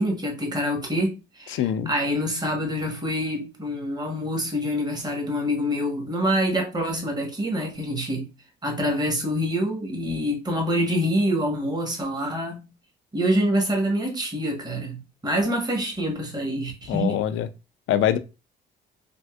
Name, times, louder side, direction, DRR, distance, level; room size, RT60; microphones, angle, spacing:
voice 1, 0.0-8.3 8.6-12.6 13.1-17.2, equal, 20° right, 1.1 m, -26 dB
voice 2, 1.5-1.9 16.9-17.5 17.9-18.2, left 11 dB, 80° left, 0.4 m, -23 dB
3.4 x 2.6 x 2.3 m
cardioid pair, 90°, 20 cm